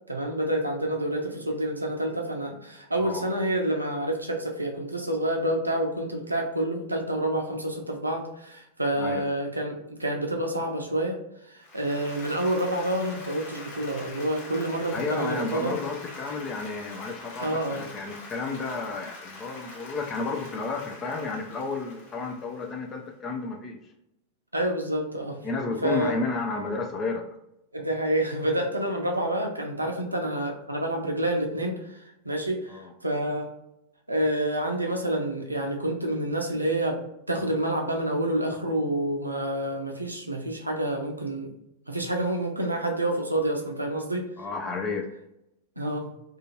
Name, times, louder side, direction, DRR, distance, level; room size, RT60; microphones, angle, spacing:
voice 1, 0.1-15.8 17.4-17.8 24.5-25.4 25.8-26.1 27.7-33.5 34.1-41.5 41.9-44.3 45.8-46.1, right 1 dB, 85° right, 1 dB, 0.5 m, -28 dB
Applause, 11.6-23.0, left 2 dB, 50° left, 0.9 m, -44 dB
voice 2, 14.9-23.8 25.4-27.2 32.7-32.9 44.4-45.1, left 3 dB, 25° left, 2 dB, 0.4 m, -32 dB
2.5 x 2.4 x 2.9 m, 0.84 s
figure-of-eight pair, 90°, 0 cm